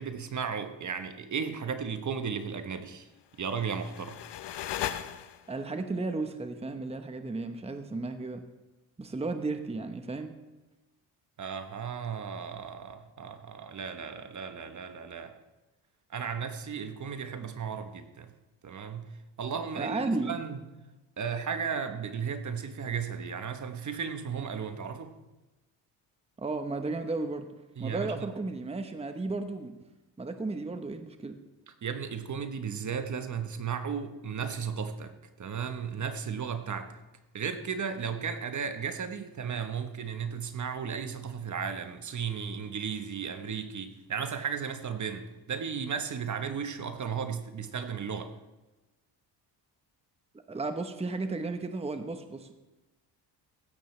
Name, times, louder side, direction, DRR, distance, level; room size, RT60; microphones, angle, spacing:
voice 1, 0.0-3.1 3.4-4.2 11.4-15.3 16.1-18.3 18.6-19.1 19.4-20.6 21.2-25.1 27.8-28.3 31.8-37.0 37.3-48.3, right 6 dB, 40° right, 8 dB, 1.1 m, -35 dB
sound 1, 3.3-5.7, left 11 dB, 70° left, 0.9 m, -37 dB
voice 2, 5.5-8.4 9.0-10.3 19.7-20.4 26.4-27.5 27.8-29.7 30.2-31.4 50.5-52.5, right 3 dB, 15° right, 7 dB, 1.0 m, -34 dB
16.0 x 13.0 x 3.3 m, 1.1 s
cardioid pair, 85°, 43 cm